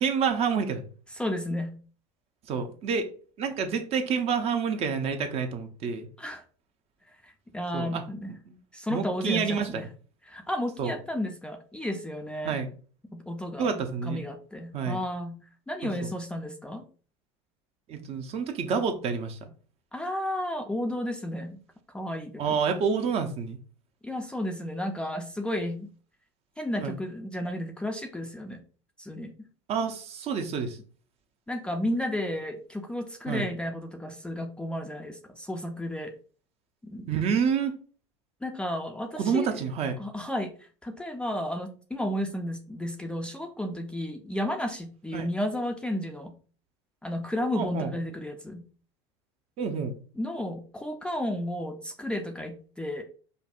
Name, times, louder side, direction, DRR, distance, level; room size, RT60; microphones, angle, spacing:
voice 1, 0.0-0.8 2.5-3.1 3.4-6.1 7.7-8.0 8.5-8.6 8.9-9.9 10.8-10.9 12.4-12.7 13.6-14.2 14.7-15.0 15.8-16.1 17.9-19.5 22.4-23.6 26.8-27.0 29.7-30.8 33.3-33.5 37.1-37.8 39.2-40.0 45.1-45.3 47.6-47.9 49.6-49.9, right 6 dB, 40° right, 0.6 m, -28 dB
voice 2, 1.1-1.7 6.2-6.4 7.2-8.3 8.7-9.9 10.3-12.6 13.1-13.7 14.0-15.4 15.7-16.8 19.9-21.6 21.9-22.6 24.0-25.9 26.6-28.6 29.0-29.3 31.5-36.1 36.8-37.1 38.4-39.6 40.0-46.3 47.0-48.6 50.2-53.0, left 1 dB, 5° left, 0.4 m, -32 dB
5.2 x 2.1 x 2.4 m
supercardioid pair, 105°, 15 cm